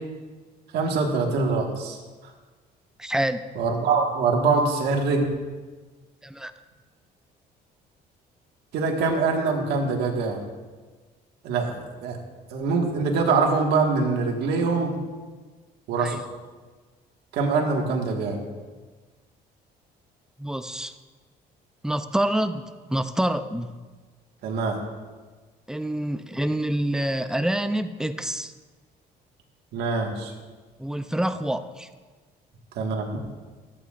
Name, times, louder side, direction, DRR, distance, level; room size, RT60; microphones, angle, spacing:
voice 1, 0.7-2.0 3.6-5.3 8.7-10.4 11.4-12.2 12.5-15.0 15.9-16.1 17.3-18.4 24.4-24.8 29.7-30.3 32.8-33.1, right 4 dB, 80° right, 1 dB, 1.6 m, -24 dB
voice 2, 3.0-3.4 6.2-6.5 16.0-16.2 20.4-20.9 21.8-23.7 25.7-28.5 30.8-31.9, right 1 dB, 5° right, 10 dB, 0.4 m, -27 dB
14.0 x 8.8 x 2.5 m, 1.4 s
cardioid pair, 110°, 17 cm